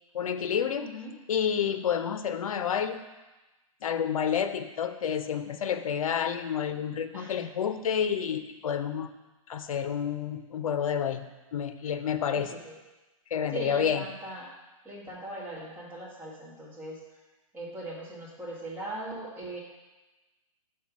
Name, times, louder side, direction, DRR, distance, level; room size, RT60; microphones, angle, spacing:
voice 1, 0.1-0.9 1.3-3.0 3.8-9.1 9.5-11.2 11.5-12.5 13.3-14.0, left 8 dB, 75° left, 10 dB, 0.6 m, -29 dB
voice 2, 0.8-1.1 7.1-7.5 12.3-12.8 13.5-14.5 14.8-17.0 17.5-19.6, right 1 dB, 10° right, -6 dB, 1.6 m, -40 dB
5.6 x 4.7 x 6.1 m, 1.1 s
hypercardioid pair, 160°, 18 cm